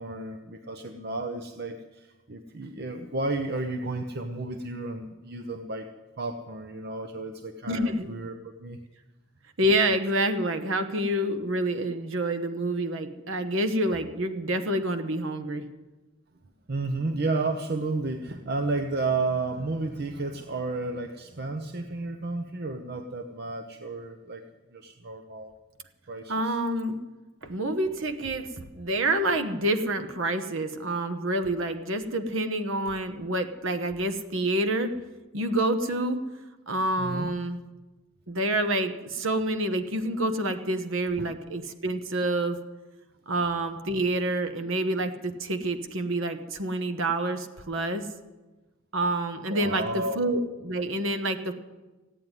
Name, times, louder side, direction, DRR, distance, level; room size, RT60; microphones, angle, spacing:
voice 1, 0.0-5.9 6.2-8.8 16.7-24.4 24.7-25.5 26.1-26.6 37.0-37.3 41.2-41.3 49.5-50.2, right 3 dB, 50° right, 6 dB, 0.7 m, -32 dB
voice 2, 7.7-8.1 9.6-15.7 26.3-27.0 27.4-34.9 35.3-36.2 36.7-37.6 38.3-42.6 43.3-48.0 48.9-51.5, right 1 dB, 65° right, 8 dB, 1.1 m, -28 dB
15.5 x 9.1 x 9.6 m, 1.2 s
head